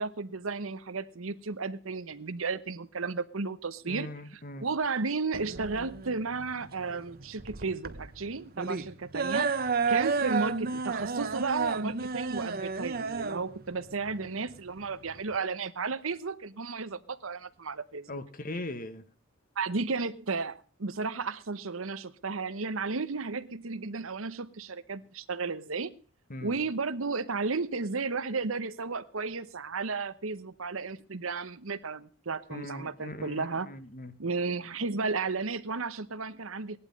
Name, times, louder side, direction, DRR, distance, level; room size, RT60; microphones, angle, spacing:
voice 1, 0.0-9.5 9.9-18.2 18.5-18.6 19.6-25.9 26.4-33.7 34.2-36.8, right 4 dB, 80° right, 14 dB, 1.0 m, -33 dB
voice 2, 3.9-4.7 18.1-19.0 26.3-26.6 32.5-34.2, left 1 dB, 45° left, 12 dB, 1.4 m, -40 dB
sound 1, 5.3-15.4, right 4 dB, 50° right, 1.0 m, -32 dB
17.5 x 11.5 x 5.3 m, 0.37 s
head